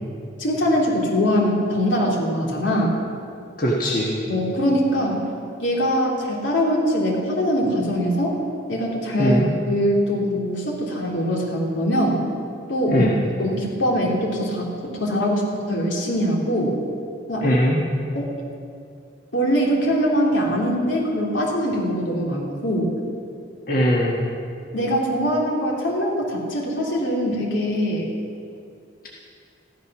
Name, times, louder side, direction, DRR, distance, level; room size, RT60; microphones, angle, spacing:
voice 1, 0.4-3.0 4.3-5.2 5.6-8.3 8.7-9.4 9.7-12.2 12.7-13.1 13.4-14.7 15.0-16.7 17.3-17.4 18.1-18.2 19.3-22.9 24.7-28.1, equal, 80° left, -3 dB, 3.2 m, -22 dB
voice 2, 3.6-4.2 9.1-9.5 12.9-13.1 17.4-17.8 23.7-24.2, equal, 45° left, -4 dB, 1.5 m, -20 dB
15.0 x 12.0 x 6.1 m, 2.5 s
head